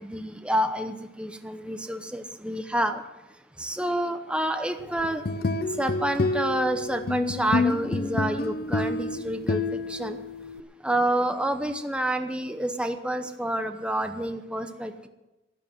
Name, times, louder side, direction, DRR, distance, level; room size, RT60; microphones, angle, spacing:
voice 1, 0.0-3.0 3.6-5.2 5.8-10.2 10.8-15.1, right 1 dB, 5° right, 7 dB, 0.9 m, -28 dB
sound 1, 5.0-10.6, left 3 dB, 55° left, 0.7 m, -28 dB
13.0 x 10.5 x 7.8 m, 1.0 s
head